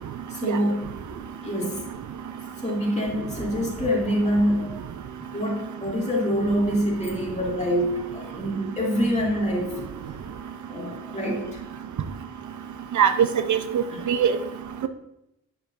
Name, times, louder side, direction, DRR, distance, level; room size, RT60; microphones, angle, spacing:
voice 1, 0.3-0.9 1.1-1.8 2.6-4.8 5.3-9.8 10.7-11.6 13.9-14.1, equal, 20° left, -3 dB, 2.3 m, -26 dB
voice 2, 13.0-14.4, right 7 dB, 70° right, 10 dB, 0.5 m, -21 dB
8.2 x 6.7 x 2.5 m, 0.84 s
cardioid pair, 60°, 31 cm